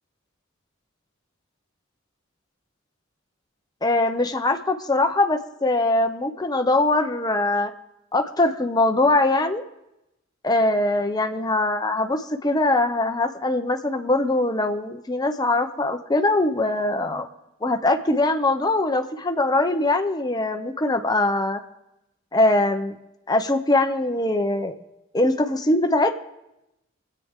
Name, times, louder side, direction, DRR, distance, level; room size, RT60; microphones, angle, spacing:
voice 1, 3.8-7.7 8.1-9.6 10.4-17.3 17.6-21.6 22.3-22.9 23.3-24.8 25.1-26.1, left 2 dB, 20° left, 6 dB, 0.8 m, -22 dB
25.5 x 8.7 x 3.7 m, 0.91 s
head